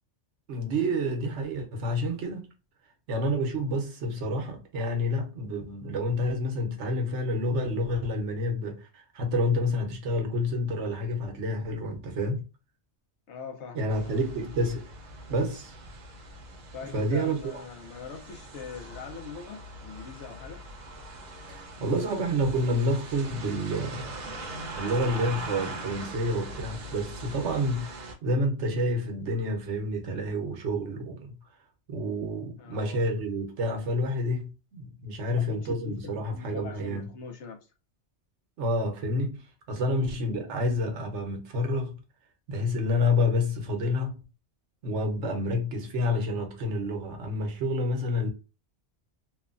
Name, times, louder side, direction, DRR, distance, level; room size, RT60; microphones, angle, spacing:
voice 1, 0.5-2.5 3.1-12.4 13.7-14.9 15.3-15.7 16.9-17.4 21.5-24.2 24.7-31.3 31.9-37.1 38.6-39.4 39.7-42.0 42.5-44.2 44.8-48.3, left 1 dB, 85° right, 1.1 m, -29 dB
voice 2, 13.3-14.2 16.7-20.7 32.6-33.0 35.2-37.6 39.7-40.0, left 5 dB, 80° left, 1.1 m, -42 dB
sound 1, 13.9-28.1, right 1 dB, 50° right, 0.6 m, -41 dB
3.1 x 2.2 x 2.4 m
omnidirectional pair, 1.2 m